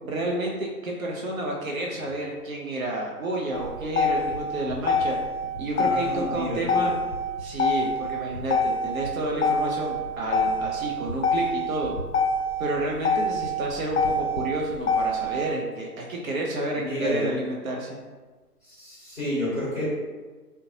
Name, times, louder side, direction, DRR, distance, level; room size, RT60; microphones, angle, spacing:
voice 1, 0.0-5.2 5.6-7.0 7.4-11.9 12.6-18.0, right 1 dB, 60° right, -1 dB, 0.5 m, -30 dB
Motor vehicle (road), 3.5-15.5, left 2 dB, 50° left, 0.7 m, -26 dB
voice 2, 5.7-6.8 16.7-17.3 18.6-19.8, left 1 dB, 5° right, -13 dB, 0.8 m, -30 dB
2.7 x 2.1 x 2.6 m, 1.3 s
figure-of-eight pair, 150°, 47 cm